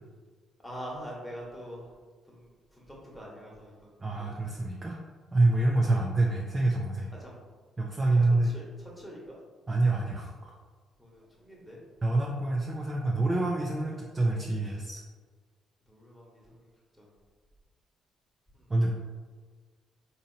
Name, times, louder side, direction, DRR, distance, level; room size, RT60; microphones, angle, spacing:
voice 1, 0.6-1.8 2.3-2.5 2.8-4.3 5.9-6.0 7.2-7.4 8.4-8.7 9.0-9.4 11.0-11.8 15.9-16.4 17.0-17.1, equal, 5° left, -4 dB, 1.3 m, -44 dB
voice 2, 4.0-5.0 5.3-7.1 7.8-8.5 9.7-10.5 12.0-15.0 18.7-18.9, right 2 dB, 30° right, -2 dB, 0.5 m, -26 dB
3.7 x 2.8 x 2.7 m, 1.5 s
supercardioid pair, 55°, 0 cm